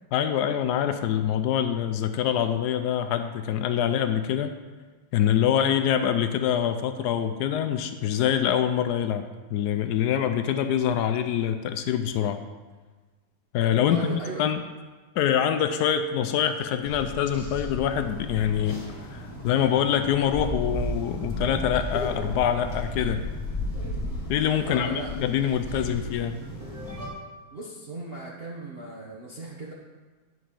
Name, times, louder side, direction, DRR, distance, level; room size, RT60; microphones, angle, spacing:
voice 1, 0.1-4.5 5.1-12.4 13.5-14.6 15.2-18.8 19.1-23.2 24.3-26.4, left 9 dB, 80° left, 8 dB, 0.9 m, -25 dB
voice 2, 13.9-14.5 24.6-25.2 27.5-29.7, right 2 dB, 45° right, -3 dB, 0.8 m, -37 dB
sound 1, 16.8-27.1, left 1 dB, 15° left, 1.9 m, -34 dB
11.0 x 6.2 x 3.7 m, 1.4 s
omnidirectional pair, 2.2 m